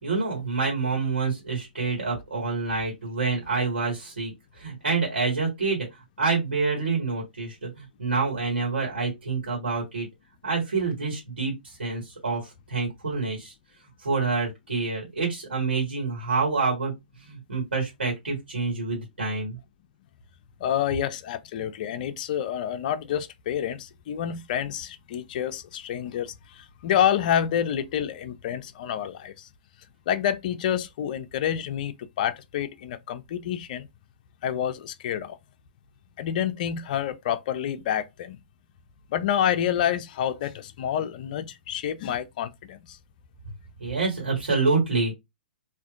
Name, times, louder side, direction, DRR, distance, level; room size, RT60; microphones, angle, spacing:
voice 1, 0.0-5.9 6.2-10.1 10.4-13.5 14.0-16.9 17.2-19.6 43.8-45.1, right 4 dB, 85° right, 1.6 m, -27 dB
voice 2, 20.6-29.5 30.1-33.9 34.4-35.4 36.2-38.4 39.1-43.0, left 9 dB, 50° left, 0.4 m, -28 dB
3.3 x 2.5 x 2.4 m
hypercardioid pair, 120°, 6 cm